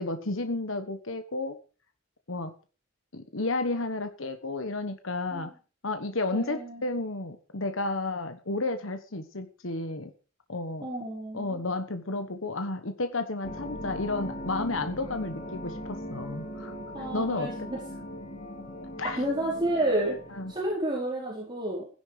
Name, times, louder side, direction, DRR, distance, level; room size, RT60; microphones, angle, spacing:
voice 1, 0.0-1.6 2.3-2.5 3.1-5.5 5.8-10.1 10.5-10.9 11.3-16.7 17.1-17.7 19.0-19.2 20.3-20.5, left 2 dB, 65° left, 7 dB, 1.3 m, -32 dB
voice 2, 6.3-6.8 10.8-11.6 16.9-17.8 19.2-20.2 20.5-21.8, right 1 dB, 20° right, -4 dB, 4.7 m, -30 dB
sound 1, 13.4-20.8, equal, 35° left, 3.1 m, -39 dB
16.0 x 11.0 x 5.0 m, 0.35 s
head